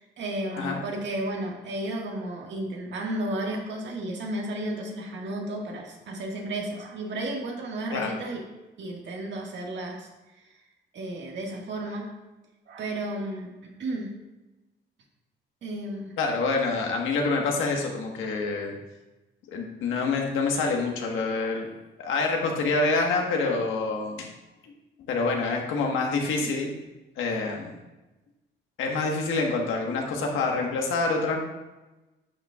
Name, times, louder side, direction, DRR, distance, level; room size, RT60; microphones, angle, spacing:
voice 1, 0.0-8.4 8.8-10.1 10.9-12.1 12.7-13.5 13.8-14.1 15.6-16.1 21.4-21.6 26.4-26.5, right 1 dB, 65° right, 0 dB, 1.8 m, -33 dB
voice 2, 16.2-18.7 19.5-21.7 22.0-24.3 24.6-24.7 25.1-26.7 27.2-27.7 28.8-31.4, left 3 dB, 85° left, 1 dB, 1.5 m, -26 dB
10.5 x 6.9 x 2.4 m, 1.1 s
cardioid pair, 90°, 20 cm